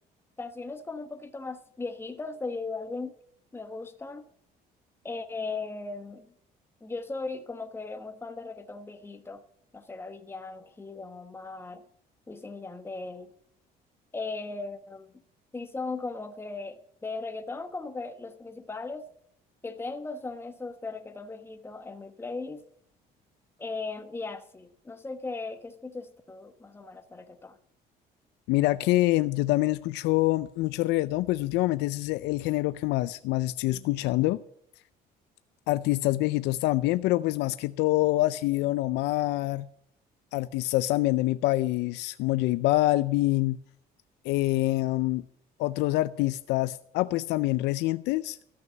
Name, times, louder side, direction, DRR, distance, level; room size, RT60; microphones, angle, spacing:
voice 1, 0.4-3.1 3.5-4.3 5.0-6.3 6.8-9.4 9.7-11.8 12.3-13.3 14.1-15.1 15.5-19.1 19.6-22.6 23.6-27.6, left 3 dB, 15° left, 1.2 m, -37 dB
voice 2, 28.5-34.4 35.7-39.7 40.3-43.6 44.2-45.2 45.6-48.4, left 18 dB, 90° left, 0.5 m, -26 dB
13.5 x 6.1 x 8.7 m
cardioid pair, 110°, 17 cm